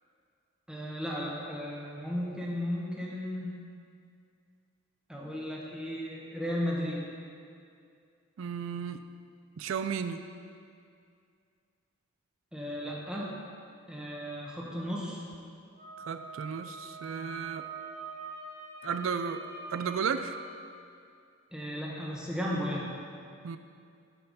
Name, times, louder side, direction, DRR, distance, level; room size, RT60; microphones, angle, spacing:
voice 1, 0.7-3.5 5.1-7.1 12.5-13.3 13.9-15.2 18.8-18.9 21.5-22.9, equal, 5° right, -4 dB, 1.2 m, -35 dB
voice 2, 8.4-9.0 9.6-10.2 16.1-17.6 18.8-19.4 19.7-20.4 23.4-23.6, right 6 dB, 75° right, 10 dB, 0.4 m, -33 dB
Wind instrument woodwind instrument, 15.8-20.5, right 3 dB, 35° right, 1.4 m, -44 dB
9.9 x 6.7 x 4.1 m, 2.4 s
head